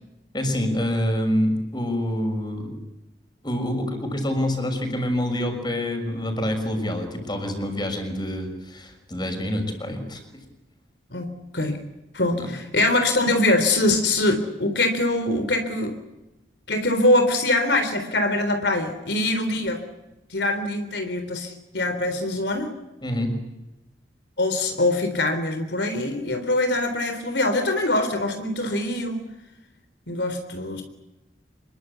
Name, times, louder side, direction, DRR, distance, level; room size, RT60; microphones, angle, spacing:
voice 1, 0.3-2.8 3.4-10.2 12.4-12.5 23.0-23.4, left 1 dB, 25° left, 4 dB, 6.2 m, -26 dB
voice 2, 12.1-16.0 16.7-19.8 20.3-22.7 24.4-29.2 30.1-30.8, left 2 dB, 75° left, 7 dB, 3.8 m, -23 dB
27.0 x 23.0 x 8.3 m, 0.99 s
head